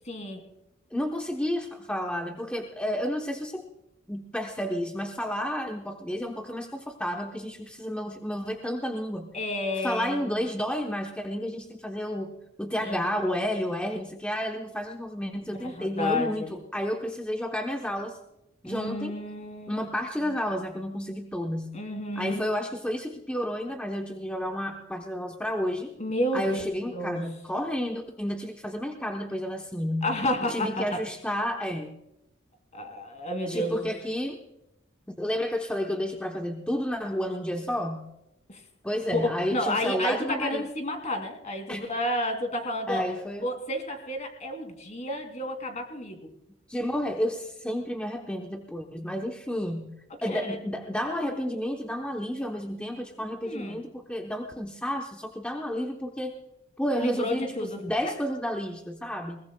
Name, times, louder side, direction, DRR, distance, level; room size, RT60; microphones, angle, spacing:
voice 1, 0.1-0.4 9.3-10.2 12.8-13.0 15.6-16.5 18.6-19.9 21.7-22.4 26.0-26.6 26.9-27.2 30.0-30.9 32.7-33.9 38.5-38.6 39.1-39.2 39.5-43.1 43.4-46.3 50.2-50.6 53.4-53.8 57.0-58.1, left 1 dB, 40° left, 5 dB, 2.6 m, -31 dB
voice 2, 0.9-3.6 4.1-9.3 9.8-18.2 18.6-19.1 19.7-21.8 22.2-25.9 26.3-30.1 30.5-31.9 33.5-34.4 35.2-38.1 38.8-40.6 41.7-41.9 42.9-43.5 46.7-49.9 50.2-56.3 56.8-59.4, equal, 5° left, 2 dB, 0.9 m, -31 dB
21.5 x 20.5 x 2.3 m, 0.85 s
head